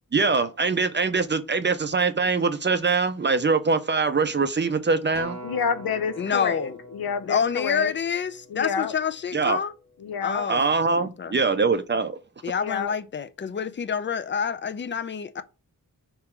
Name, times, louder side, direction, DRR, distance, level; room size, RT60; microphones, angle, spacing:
voice 1, 0.1-5.4 9.3-9.6 10.5-12.2, right 4 dB, 30° right, 0.4 m, -23 dB
Acoustic guitar, 5.1-9.6 10.2-10.3, right 1 dB, 15° left, 1.6 m, -44 dB
voice 2, 5.4-7.9 8.5-8.9 10.0-10.5 12.6-12.9, left 6 dB, 80° left, 0.6 m, -29 dB
voice 3, 6.2-6.8 7.2-9.7 10.2-11.4 12.4-15.4, left 7 dB, 35° left, 0.4 m, -28 dB
3.6 x 2.9 x 4.4 m
wide cardioid pair, 100°, 36 cm